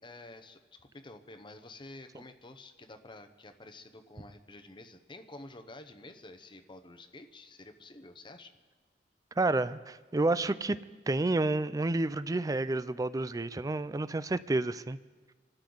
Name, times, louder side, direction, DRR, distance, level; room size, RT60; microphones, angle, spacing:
voice 1, 0.0-8.6, left 2 dB, 30° left, 8 dB, 0.8 m, -50 dB
voice 2, 9.4-10.8 11.1-15.0, right 2 dB, 20° right, 15 dB, 0.4 m, -30 dB
26.5 x 13.0 x 4.0 m, 1.4 s
head